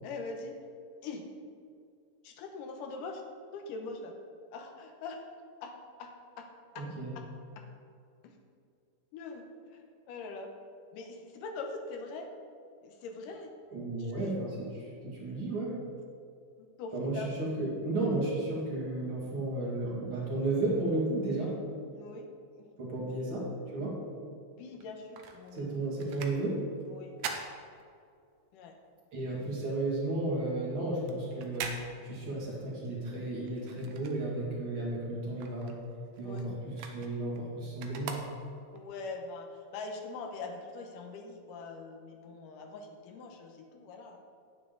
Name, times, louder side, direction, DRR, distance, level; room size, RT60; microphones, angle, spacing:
voice 1, 0.0-0.6 1.0-1.2 2.2-3.2 3.5-4.1 4.5-5.2 5.6-5.7 6.0-6.1 6.4-6.5 6.7-6.8 7.6-7.7 8.2-8.3 9.1-9.4 9.7-10.5 10.9-12.3 12.8-13.5 14.0-14.2 16.6-17.3 18.5-18.6 21.9-22.3 22.5-22.7 24.5-26.0 26.9-27.1 28.5-28.8 32.1-32.3 36.2-36.5 38.7-44.2, left 4 dB, 80° left, 3 dB, 2.4 m, -43 dB
voice 2, 6.8-7.1 13.7-15.8 16.9-21.5 22.8-24.0 25.5-26.6 29.1-31.7 32.0-35.7 36.2-38.2, right 2 dB, 40° right, -5 dB, 2.7 m, -33 dB
sound 1, 24.7-28.4 28.8-34.7 35.0-38.8 39.4-39.5, right 6 dB, 70° right, 1.9 m, -44 dB
9.3 x 9.1 x 3.9 m, 2.3 s
omnidirectional pair, 3.9 m